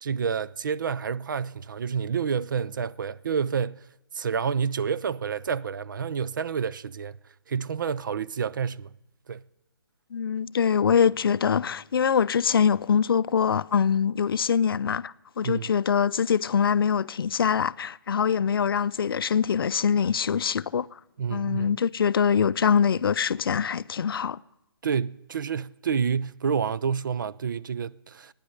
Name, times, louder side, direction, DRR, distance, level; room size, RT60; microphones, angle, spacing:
voice 1, 0.0-3.9 4.1-7.2 7.5-8.9 9.3-9.4 15.4-15.7 21.2-21.7 24.8-28.3, right 6 dB, 55° right, 0.4 m, -29 dB
voice 2, 10.1-20.9 21.3-24.4, left 7 dB, 70° left, 0.4 m, -24 dB
15.5 x 10.0 x 6.4 m
hypercardioid pair, 175°, 12 cm